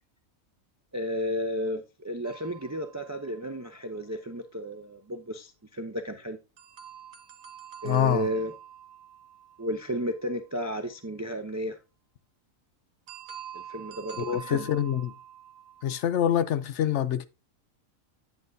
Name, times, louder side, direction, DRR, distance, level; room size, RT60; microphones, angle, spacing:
voice 1, 0.9-6.4 7.8-8.5 9.6-11.8 13.5-14.7, equal, 25° right, 0.4 m, -33 dB
sound 1, 2.2-4.0 6.6-10.5 13.1-16.5, right 9 dB, 75° right, 1.4 m, -46 dB
voice 2, 7.8-8.3 14.2-15.1 15.8-17.3, left 10 dB, 65° left, 0.9 m, -25 dB
9.3 x 7.9 x 2.6 m
omnidirectional pair, 1.4 m